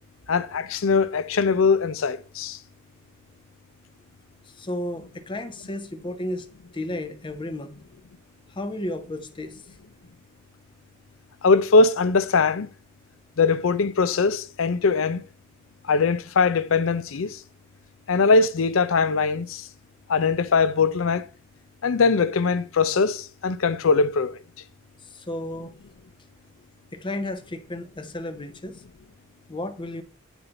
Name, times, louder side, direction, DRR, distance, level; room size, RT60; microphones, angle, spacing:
voice 1, 0.3-2.6 11.4-12.7 13.4-15.2 15.9-17.4 18.1-19.7 20.1-21.3 21.8-24.4, left 4 dB, 70° left, 0.5 m, -21 dB
voice 2, 4.5-6.5 6.7-7.8 8.5-9.6 25.0-25.7 26.9-28.8 29.5-30.0, left 1 dB, 25° left, 0.8 m, -33 dB
9.2 x 4.4 x 3.8 m
head